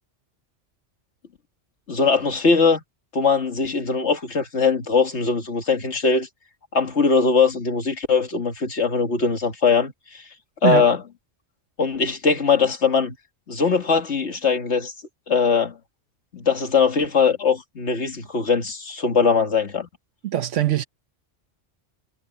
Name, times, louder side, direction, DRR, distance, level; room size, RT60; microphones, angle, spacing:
voice 1, 1.9-2.8 3.1-6.3 6.7-10.2 10.6-11.0 11.8-13.2 13.5-14.9 15.3-15.8 16.3-19.9, left 5 dB, 70° left, 2.2 m, -21 dB
voice 2, 20.2-20.8, right 12 dB, 85° right, 1.2 m, -21 dB
omnidirectional pair, 1.2 m